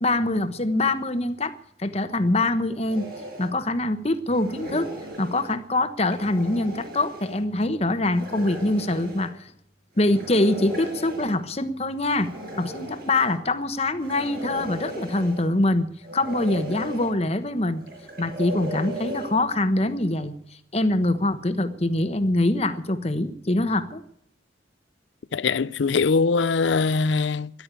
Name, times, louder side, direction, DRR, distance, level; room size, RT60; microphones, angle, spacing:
voice 1, 0.0-3.1 3.4-4.9 5.2-9.4 10.0-12.3 12.6-15.9 16.1-17.8 18.2-20.3 20.7-24.0, left 2 dB, 35° left, 1.1 m, -24 dB
sound 1, 2.9-3.5 4.3-5.5 6.0-7.4 8.1-9.3 10.0-11.4 12.1-13.4 14.0-15.5 16.0-17.1 17.8-19.4, equal, 55° right, 6.8 m, -37 dB
voice 2, 25.3-27.5, left 4 dB, 75° left, 0.5 m, -22 dB
13.5 x 12.0 x 8.3 m
head